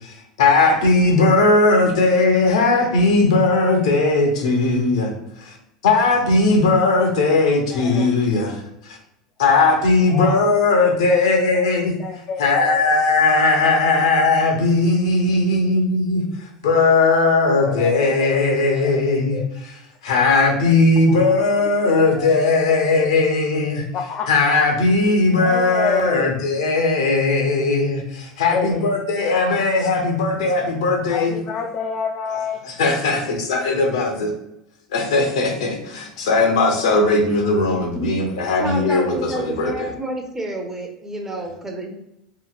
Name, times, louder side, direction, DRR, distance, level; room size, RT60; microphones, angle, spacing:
voice 1, 0.0-5.1 5.4-5.6 5.8-9.0 9.4-11.9 12.4-19.8 20.0-23.9 24.3-31.4 32.8-34.3 34.9-39.9, left 3 dB, 65° left, 3 dB, 0.6 m, -18 dB
voice 2, 7.7-8.1 10.1-10.4 12.0-12.9 15.5-15.8 17.6-18.9 19.3-19.4 21.1-21.4 21.9-22.3 22.9-23.1 23.9-24.3 25.4-26.3 28.5-28.9 31.1-32.6, left 6 dB, 35° left, 2 dB, 0.3 m, -28 dB
voice 3, 38.6-41.9, right 2 dB, 15° right, 2 dB, 0.6 m, -29 dB
2.8 x 2.7 x 2.4 m, 0.82 s
figure-of-eight pair, 80°, 3 cm